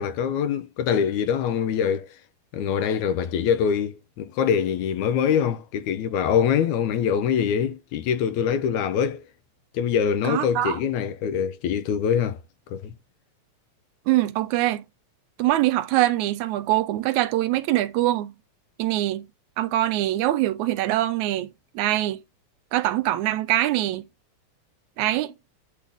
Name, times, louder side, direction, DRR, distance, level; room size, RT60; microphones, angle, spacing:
voice 1, 0.0-2.1 2.5-9.2 9.7-12.4 12.7-12.9, left 8 dB, 80° left, 2.0 m, -24 dB
voice 2, 10.2-10.8 14.1-14.8 15.4-18.3 18.8-19.3 19.6-22.2 22.7-24.1 25.0-25.3, right 15 dB, 80° right, 2.0 m, -23 dB
8.5 x 3.4 x 3.6 m
omnidirectional pair, 3.5 m